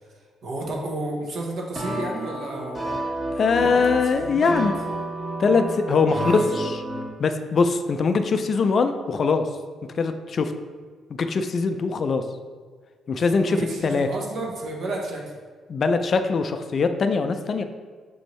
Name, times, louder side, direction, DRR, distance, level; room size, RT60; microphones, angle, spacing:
voice 1, 0.1-3.0 3.5-4.6 6.2-6.6 13.2-15.2, right 2 dB, 65° right, -1 dB, 1.0 m, -32 dB
sound 1, 1.8-7.1, right 1 dB, 30° right, 1.3 m, -30 dB
voice 2, 3.4-4.7 5.4-6.8 7.2-9.4 10.0-10.5 11.1-12.2 13.1-13.6 13.8-14.1 15.7-17.6, left 4 dB, 50° left, 8 dB, 0.3 m, -22 dB
6.2 x 2.6 x 3.1 m, 1.5 s
cardioid pair, 90°, 0 cm